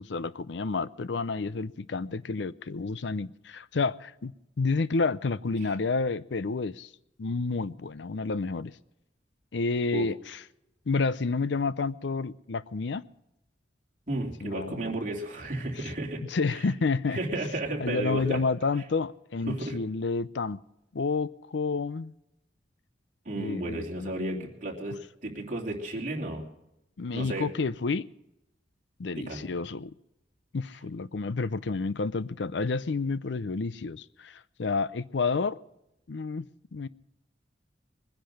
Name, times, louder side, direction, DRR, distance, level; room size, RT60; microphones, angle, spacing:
voice 1, 0.0-6.9 7.2-8.7 9.5-10.4 10.9-13.0 14.4-14.9 15.8-15.9 16.2-17.2 17.8-20.6 20.9-22.1 23.3-24.5 27.0-28.1 29.0-29.9 30.5-35.6 36.1-36.9, left 4 dB, 80° left, 17 dB, 0.6 m, -30 dB
voice 2, 14.1-16.2 16.5-16.6 17.1-18.4 19.5-19.8 23.2-25.0 25.2-26.4 27.1-27.5 29.2-29.4, right 1 dB, 45° right, 0 dB, 3.0 m, -33 dB
21.5 x 10.5 x 6.4 m, 0.87 s
head